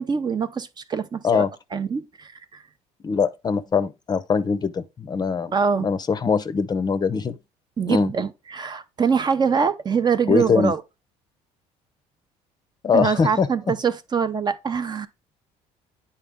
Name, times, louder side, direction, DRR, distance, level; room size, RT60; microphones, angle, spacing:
voice 1, 0.0-1.4 1.7-2.3 5.5-5.9 7.8-10.8 12.9-15.1, right 6 dB, 30° right, 0.7 m, -24 dB
voice 2, 3.0-5.5 5.8-7.4 7.9-8.1 10.3-10.7 12.8-13.7, left 5 dB, 30° left, 0.6 m, -22 dB
9.0 x 4.4 x 3.5 m
cardioid pair, 105°, 14 cm